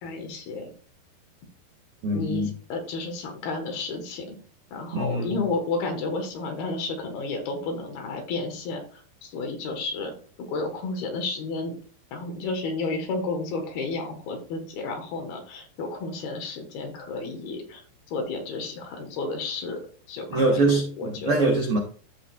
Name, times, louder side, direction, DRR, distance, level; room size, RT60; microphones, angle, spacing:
voice 1, 0.0-0.7 2.1-4.4 4.7-10.1 10.5-11.7 12.1-17.8 18.1-19.8 20.1-20.6 21.0-21.4, left 3 dB, 70° left, 3.3 m, -32 dB
voice 2, 2.0-2.5 4.9-5.3 20.3-21.8, right 2 dB, 70° right, 1.3 m, -23 dB
14.5 x 5.1 x 2.4 m
omnidirectional pair, 4.7 m